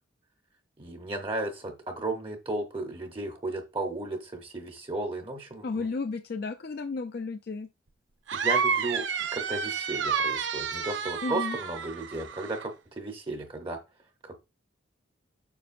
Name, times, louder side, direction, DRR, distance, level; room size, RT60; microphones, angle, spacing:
voice 1, 0.8-5.9 8.3-12.7 13.0-13.8 14.2-14.5, right 2 dB, 25° right, 4 dB, 0.8 m, -34 dB
voice 2, 5.6-7.7 11.2-11.6, left 4 dB, 50° left, 7 dB, 0.4 m, -33 dB
sound 1, 8.3-12.7, right 6 dB, 65° right, 0.6 m, -30 dB
7.1 x 6.0 x 2.5 m, 0.27 s
head